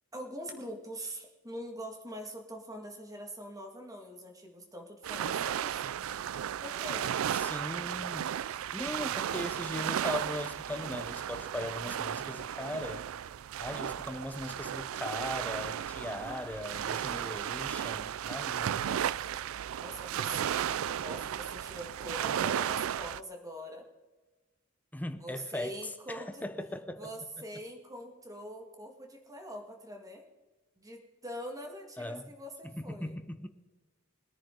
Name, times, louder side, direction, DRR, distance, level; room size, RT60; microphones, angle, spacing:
voice 1, 0.1-5.9 6.6-7.1 16.1-16.8 19.8-23.8 25.2-26.4 27.0-30.2 30.8-33.1, equal, 15° right, 3 dB, 2.0 m, -44 dB
sound 1, 5.0-23.2, right 9 dB, 80° right, 0.4 m, -34 dB
voice 2, 7.3-8.3 8.7-13.1 13.6-19.0 24.9-27.1 32.0-32.3 32.6-33.5, left 1 dB, 10° left, 9 dB, 0.8 m, -39 dB
22.0 x 10.0 x 3.9 m, 1.2 s
head